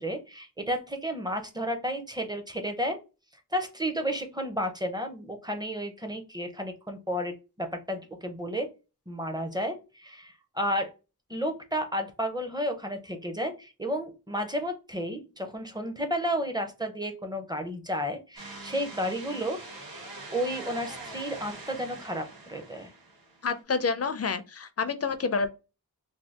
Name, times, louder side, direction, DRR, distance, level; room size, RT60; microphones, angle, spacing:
voice 1, 0.0-3.0 3.5-8.7 9.1-10.9 11.3-19.6 20.3-22.9, equal, 10° right, 0.6 m, -32 dB
sound 1, 18.4-23.5, right 2 dB, 70° right, 1.3 m, -43 dB
voice 2, 23.4-25.5, left 5 dB, 40° left, 0.4 m, -28 dB
2.7 x 2.3 x 3.4 m
wide cardioid pair, 75°, 38 cm